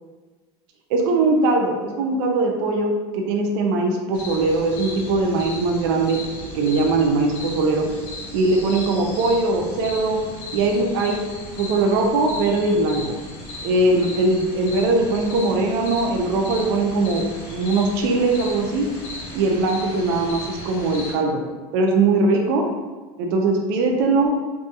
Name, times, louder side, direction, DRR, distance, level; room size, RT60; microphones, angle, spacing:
voice 1, 0.9-6.2 6.5-7.9 8.3-10.2 10.5-11.2 11.6-13.1 13.6-17.2 17.5-18.9 19.3-21.4 21.7-22.6 23.2-24.4, right 3 dB, 65° right, 1 dB, 0.5 m, -20 dB
sound 1, 4.1-21.1, left 1 dB, 60° left, 0.8 m, -36 dB
2.7 x 2.7 x 2.3 m, 1.3 s
cardioid pair, 155°, 13 cm